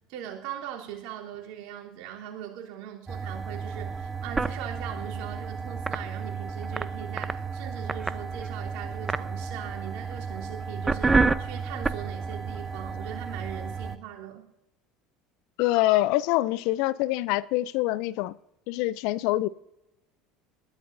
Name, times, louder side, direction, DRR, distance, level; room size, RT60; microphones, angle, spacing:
voice 1, 0.1-14.5, right 10 dB, 65° right, 3.2 m, -40 dB
sound 1, 3.1-14.0, right 4 dB, 20° right, 0.8 m, -30 dB
voice 2, 15.6-18.4 18.7-19.5, left 17 dB, 65° left, 0.4 m, -25 dB
20.5 x 13.5 x 2.6 m
hypercardioid pair, 75°, 0 cm